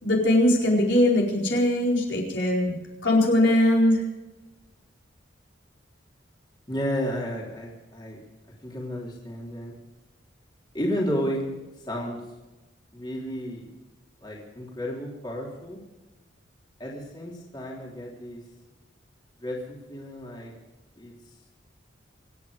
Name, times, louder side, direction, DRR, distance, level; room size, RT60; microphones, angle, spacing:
voice 1, 0.0-2.7 3.0-4.0, left 1 dB, 70° left, -2 dB, 4.6 m, -21 dB
voice 2, 6.7-8.2 8.6-9.7 10.7-11.4 11.8-12.2 12.9-13.6 14.2-15.8 16.8-18.4 19.4-20.5 21.0-21.1, equal, 20° left, -3 dB, 3.3 m, -32 dB
26.0 x 9.7 x 5.1 m, 1.1 s
head